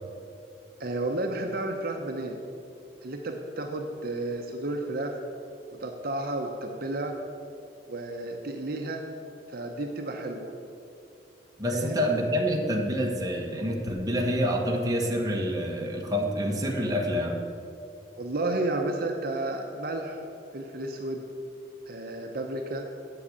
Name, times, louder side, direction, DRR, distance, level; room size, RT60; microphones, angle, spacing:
voice 1, 0.8-2.4 3.0-5.2 5.8-7.2 7.9-9.0 9.5-10.5 11.7-12.0 18.2-20.2 20.5-21.2 21.9-22.9, right 2 dB, 55° right, 3 dB, 0.9 m, -32 dB
voice 2, 11.6-17.4, equal, 20° right, 0 dB, 1.4 m, -27 dB
7.8 x 7.8 x 8.5 m, 2.5 s
head